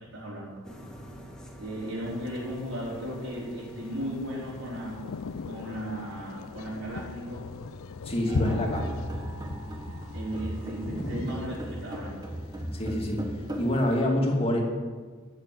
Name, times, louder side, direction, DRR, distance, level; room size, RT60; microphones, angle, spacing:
voice 1, 0.1-0.6 1.6-5.0 5.4-7.5 8.1-8.8 10.1-12.3, equal, 75° right, -9 dB, 4.4 m, -36 dB
sound 1, 0.6-12.0, equal, 5° left, 1.6 m, -50 dB
Thunder, 2.0-14.0, left 4 dB, 85° left, 0.5 m, -39 dB
voice 2, 8.0-8.8 9.1-9.2 10.8-11.3 12.7-13.2 13.6-14.6, left 1 dB, 30° left, 0 dB, 2.2 m, -27 dB
sound 2, 8.3-13.7, right 1 dB, 20° right, 1.4 m, -37 dB
14.0 x 6.8 x 9.1 m, 1.5 s
head